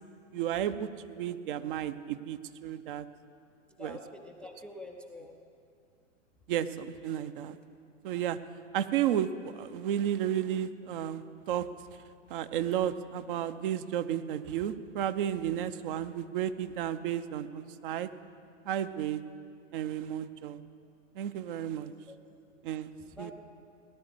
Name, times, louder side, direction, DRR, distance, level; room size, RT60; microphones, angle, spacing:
voice 1, 0.3-3.0 3.8-4.0 6.5-7.6 8.0-8.4 8.7-11.7 12.3-18.1 18.7-19.2 19.7-20.6 21.2-21.9 22.6-22.9 23.2-23.3, right 10 dB, 40° right, 12 dB, 0.7 m, -32 dB
voice 2, 3.8-5.3 22.1-22.2 23.0-23.3, left 2 dB, 5° left, 2 dB, 0.4 m, -46 dB
17.0 x 10.5 x 7.8 m, 2.5 s
hypercardioid pair, 115°, 39 cm